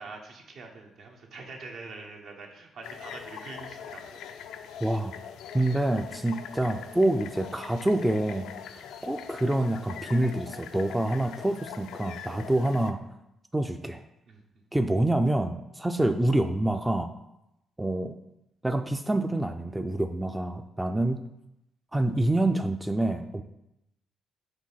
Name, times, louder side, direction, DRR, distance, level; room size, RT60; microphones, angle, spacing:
voice 1, 0.0-4.2 5.6-6.0 14.3-14.6, right 3 dB, 70° right, 2 dB, 1.1 m, -45 dB
sound 1, 2.8-12.9, left 8 dB, 85° left, 0.4 m, -42 dB
voice 2, 4.8-5.1 5.5-13.0 13.5-14.0 14.7-17.1 17.8-18.2 18.6-21.2 21.9-23.4, right 1 dB, 10° right, 6 dB, 0.4 m, -27 dB
5.0 x 3.5 x 5.7 m, 0.86 s
cardioid pair, 90°, 0 cm